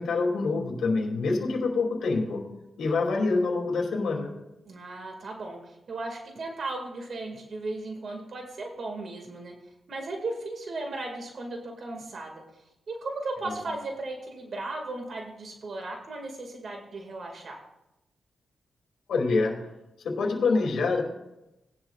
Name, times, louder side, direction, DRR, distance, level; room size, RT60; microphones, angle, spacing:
voice 1, 0.0-2.4 2.8-4.3 13.4-13.5 19.1-19.5 20.0-21.0, left 3 dB, 85° left, 0 dB, 2.7 m, -26 dB
voice 2, 4.7-9.5 9.9-12.3 12.9-17.6, right 2 dB, 60° right, 2 dB, 2.1 m, -36 dB
18.5 x 11.0 x 2.4 m, 0.93 s
cardioid pair, 85°, 0 cm